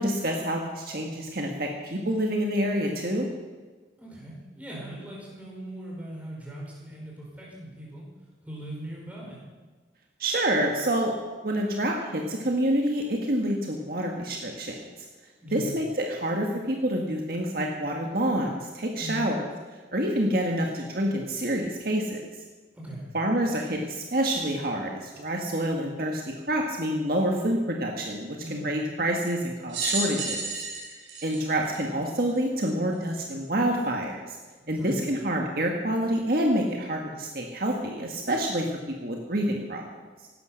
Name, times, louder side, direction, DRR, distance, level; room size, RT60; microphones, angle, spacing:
voice 1, 0.0-3.3 10.2-11.1 11.4-14.9 15.5-19.5 19.9-22.2 23.1-26.2 26.5-30.4 31.2-34.4 34.7-38.6 39.0-39.8, right 1 dB, 50° right, 1 dB, 1.7 m, -27 dB
voice 2, 4.0-8.1 8.4-9.4 15.4-15.7 18.9-19.3 22.7-23.1 28.4-28.7 34.6-35.0, right 1 dB, 10° right, -4 dB, 5.1 m, -39 dB
sound 1, 29.7-32.4 33.1-33.2 34.3-34.4, right 3 dB, 90° right, 4.6 m, -32 dB
17.0 x 12.0 x 6.4 m, 1.3 s
head